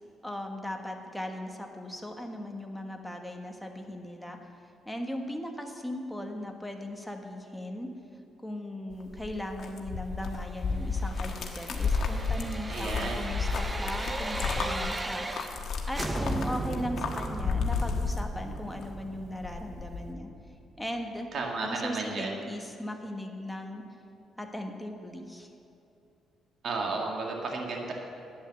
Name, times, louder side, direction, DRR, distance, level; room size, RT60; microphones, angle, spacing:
voice 1, 0.2-4.4 4.8-7.9 8.4-15.2 15.8-20.3 20.8-21.3 21.6-23.8 24.4-25.5, left 1 dB, 5° left, 2 dB, 1.5 m, -38 dB
sound 1, 8.9-18.8 19.1-20.1, left 4 dB, 65° left, 1.4 m, -32 dB
sound 2, 10.9-15.7 15.9-20.8 21.2-21.3, right 2 dB, 20° right, 0.7 m, -37 dB
voice 2, 12.7-13.3 21.3-22.4 26.6-27.9, right 3 dB, 60° right, 0 dB, 2.0 m, -33 dB
11.0 x 9.4 x 7.0 m, 2.8 s
cardioid pair, 90°, 0 cm